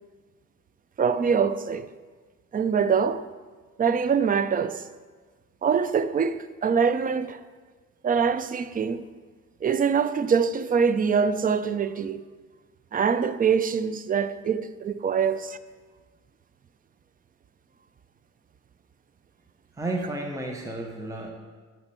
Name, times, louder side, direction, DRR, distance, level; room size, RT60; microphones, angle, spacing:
voice 1, 1.0-1.9 2.5-3.2 3.8-4.8 5.6-7.4 8.0-9.1 9.6-12.2 12.9-15.6, right 6 dB, 30° right, 0.4 m, -24 dB
voice 2, 19.7-21.3, right 2 dB, 10° right, 0.9 m, -32 dB
8.9 x 4.4 x 6.8 m
cardioid pair, 90°, 30 cm